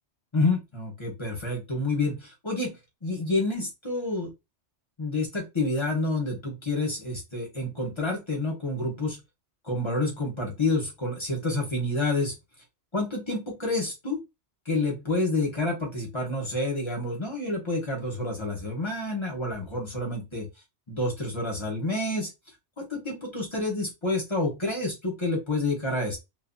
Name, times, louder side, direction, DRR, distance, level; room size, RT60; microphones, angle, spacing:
voice 1, 0.3-2.8 3.0-4.3 5.0-9.2 9.6-12.3 12.9-14.2 14.7-20.4 20.9-22.3 22.8-26.2, left 2 dB, 25° left, -1 dB, 1.0 m, -28 dB
2.6 x 2.5 x 2.6 m, 0.23 s
omnidirectional pair, 1.2 m